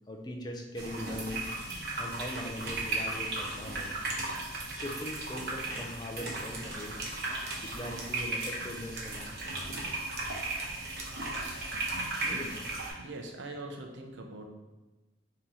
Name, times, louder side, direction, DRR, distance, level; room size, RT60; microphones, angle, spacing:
voice 1, 0.1-1.5 2.0-3.9 4.7-7.0 7.6-9.5 12.2-12.7, left 1 dB, 20° left, 2 dB, 0.4 m, -40 dB
sound 1, 0.8-12.9, right 2 dB, 55° right, 1.0 m, -36 dB
sound 2, 4.1-4.3 4.7-4.8 6.1-6.2 6.5-6.7 6.9-9.3 9.7-12.0, right 3 dB, 35° right, 0.6 m, -45 dB
voice 2, 13.0-14.5, right 2 dB, 80° right, 3 dB, 0.6 m, -42 dB
3.8 x 2.9 x 4.1 m, 1.2 s
head